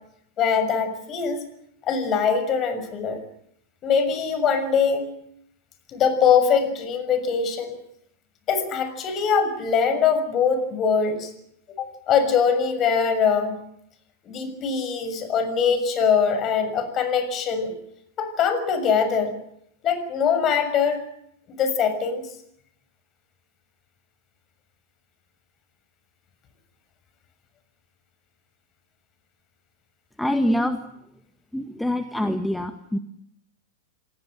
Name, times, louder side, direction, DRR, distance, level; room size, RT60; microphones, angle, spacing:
voice 1, 0.4-1.4 1.8-3.2 3.8-5.1 5.9-7.8 8.5-11.3 11.8-13.6 14.2-17.8 18.2-19.3 19.8-21.0 21.6-22.3, left 6 dB, 35° left, 10 dB, 6.4 m, -22 dB
voice 2, 30.2-30.8 31.5-33.0, left 1 dB, 5° left, 7 dB, 1.7 m, -25 dB
28.0 x 18.5 x 7.8 m, 0.74 s
hypercardioid pair, 100°, 0 cm